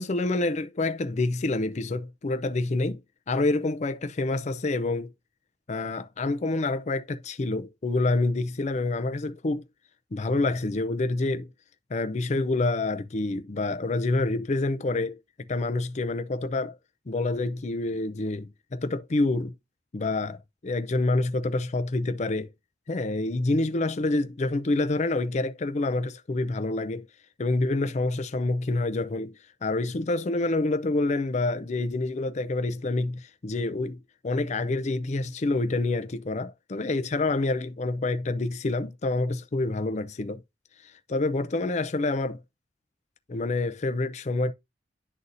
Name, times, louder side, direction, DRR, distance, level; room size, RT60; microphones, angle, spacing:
voice 1, 0.0-3.0 3.3-5.1 5.7-9.7 10.1-11.5 11.9-15.2 15.5-16.8 17.1-19.5 19.9-20.4 20.6-22.5 22.9-27.0 27.4-29.3 29.6-40.4 40.8-42.4 43.3-44.5, left 2 dB, 40° left, 0.5 m, -27 dB
11.0 x 4.0 x 2.6 m
head